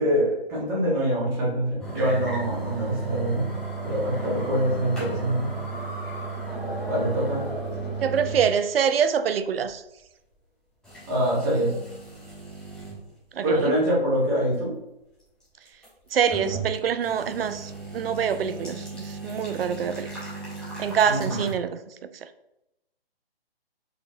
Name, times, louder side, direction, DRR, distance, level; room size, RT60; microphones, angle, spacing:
voice 1, 0.0-3.5 3.8-5.5 6.9-7.5 11.1-11.7 13.4-14.7 21.1-21.4, equal, 25° right, 1.4 m, -24 dB
sound 1, 1.8-8.5 8.8-8.9 9.7-9.8 10.8-13.0 13.5-13.6 15.7-16.7 17.0-21.5, right 3 dB, 5° left, 0.7 m, -34 dB
voice 2, 8.0-9.8 13.3-13.8 16.1-20.1 20.8-21.8 22.2-22.3, right 7 dB, 70° right, 0.4 m, -25 dB
4.1 x 2.9 x 2.6 m
figure-of-eight pair, 140°, 30 cm